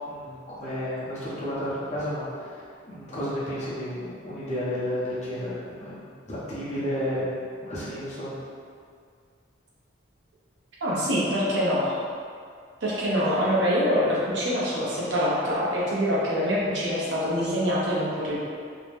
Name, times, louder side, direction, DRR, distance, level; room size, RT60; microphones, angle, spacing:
voice 1, 0.0-8.4 16.5-16.7, equal, 35° left, -9 dB, 0.7 m, -32 dB
voice 2, 10.8-12.0 12.8-18.4, equal, 75° right, -7 dB, 0.7 m, -25 dB
2.7 x 2.1 x 3.3 m, 2.2 s
head